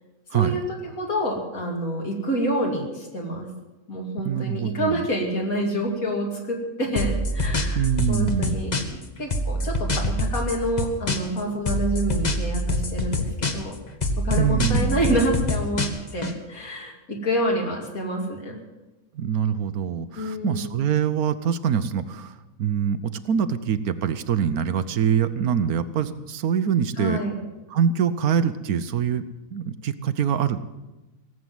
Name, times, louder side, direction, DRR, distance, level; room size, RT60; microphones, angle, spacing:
voice 1, 0.3-3.5 3.9-8.8 9.2-13.8 14.2-18.6 20.1-20.6 27.0-27.3, equal, 65° left, 0 dB, 3.1 m, -27 dB
voice 2, 4.2-5.1 7.7-8.6 14.4-15.0 19.1-27.2 27.7-29.2 29.5-30.7, right 8 dB, 75° right, 12 dB, 1.2 m, -24 dB
sound 1, 7.0-9.0 9.3-11.4 11.7-13.7 14.0-16.3, left 1 dB, 30° left, 1.1 m, -25 dB
17.5 x 7.7 x 9.4 m, 1.1 s
omnidirectional pair, 1.6 m